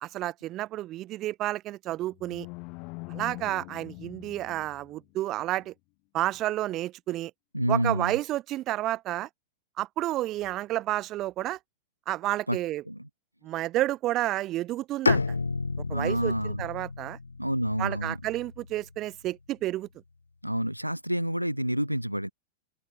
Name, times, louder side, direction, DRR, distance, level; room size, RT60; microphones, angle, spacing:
voice 1, 0.0-2.5 3.1-5.7 6.1-7.3 7.7-9.3 9.8-11.6 12.1-12.8 13.4-15.2 15.9-17.2 17.8-19.9, right 15 dB, 35° right, 0.3 m, -30 dB
sound 1, 1.9-5.1, left 31 dB, 45° left, 0.8 m, -43 dB
voice 2, 7.5-8.1 12.5-12.6 12.9-13.0 15.9-16.7 17.4-18.2 20.4-22.3, equal, 90° right, 0.6 m, -28 dB
Bowed string instrument, 15.1-19.0, left 3 dB, 80° left, 0.7 m, -31 dB
open air
figure-of-eight pair, 90°, 0 cm